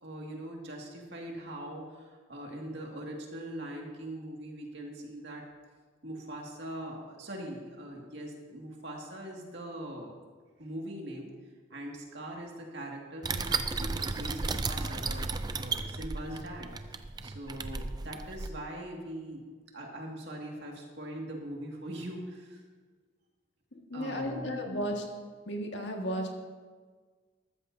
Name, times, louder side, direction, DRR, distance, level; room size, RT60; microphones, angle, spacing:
voice 1, 0.0-5.4 6.0-10.1 10.6-11.3 11.7-15.2 15.5-19.4 19.7-22.6 23.9-24.7, right 1 dB, 60° right, 0 dB, 2.1 m, -41 dB
sound 1, 13.2-18.5, right 4 dB, 20° right, 0.4 m, -34 dB
voice 2, 23.7-25.0 25.5-26.3, equal, 65° left, 1 dB, 1.8 m, -34 dB
14.0 x 13.5 x 2.7 m, 1.5 s
head